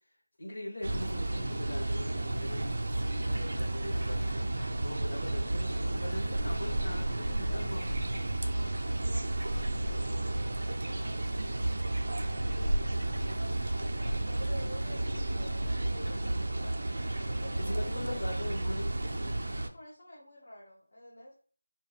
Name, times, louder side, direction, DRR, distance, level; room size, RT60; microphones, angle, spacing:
voice 1, 0.4-4.5 4.8-7.9 17.6-19.4, left 1 dB, 45° left, -2 dB, 0.9 m, -41 dB
sound 1, 0.8-19.7, right 1 dB, 45° right, 0.3 m, -32 dB
voice 2, 7.4-7.9 8.5-11.6 12.2-16.9 17.3-18.4 19.5-21.3, left 1 dB, 25° left, -7 dB, 0.5 m, -50 dB
2.5 x 2.2 x 3.1 m, 0.42 s
figure-of-eight pair, 175°, 0 cm